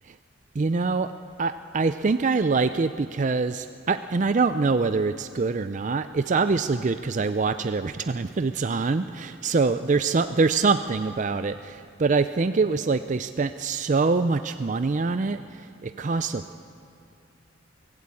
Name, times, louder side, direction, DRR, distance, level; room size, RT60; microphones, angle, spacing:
voice 1, 0.5-1.1 1.4-16.4, right 4 dB, 40° right, 10 dB, 0.4 m, -24 dB
23.5 x 14.5 x 8.5 m, 2.5 s
head